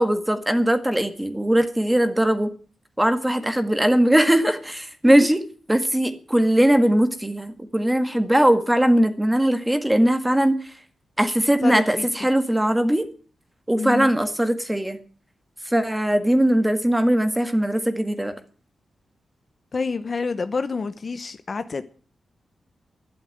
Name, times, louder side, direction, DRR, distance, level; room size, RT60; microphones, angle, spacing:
voice 1, 0.0-2.5 3.0-5.4 5.7-10.6 11.2-13.0 13.7-15.0 15.6-18.3, right 1 dB, 5° right, 1.8 m, -20 dB
voice 2, 11.6-12.1 13.8-14.1 19.7-21.8, left 4 dB, 40° left, 0.9 m, -28 dB
12.0 x 11.5 x 9.1 m
wide cardioid pair, 150°, 0 cm